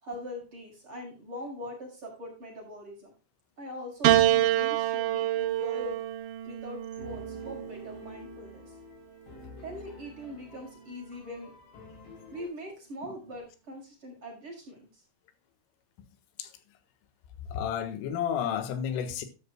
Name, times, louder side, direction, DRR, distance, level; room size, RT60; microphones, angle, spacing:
voice 1, 0.0-3.1 3.6-6.0 6.4-8.7 9.6-11.5 12.3-15.0, left 1 dB, 25° right, 6.1 m, -42 dB
Piano, 4.0-8.5 9.6-10.3, right 13 dB, 75° right, 2.9 m, -27 dB
sound 1, 7.0-12.5, left 5 dB, 60° left, 5.3 m, -50 dB
voice 2, 17.5-19.3, left 8 dB, 85° left, 4.0 m, -31 dB
13.0 x 12.5 x 2.2 m
omnidirectional pair, 5.7 m